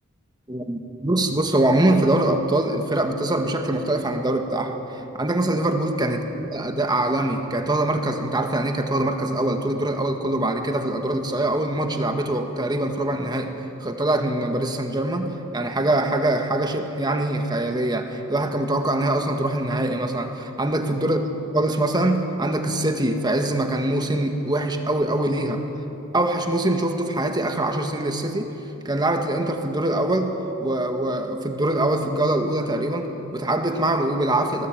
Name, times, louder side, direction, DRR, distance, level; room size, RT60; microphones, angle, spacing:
voice 1, 0.5-4.8 5.2-21.2 21.5-25.6 26.1-28.5 28.9-30.3 30.6-34.7, right 1 dB, 20° right, 4 dB, 1.8 m, -23 dB
26.0 x 19.0 x 9.2 m, 2.9 s
head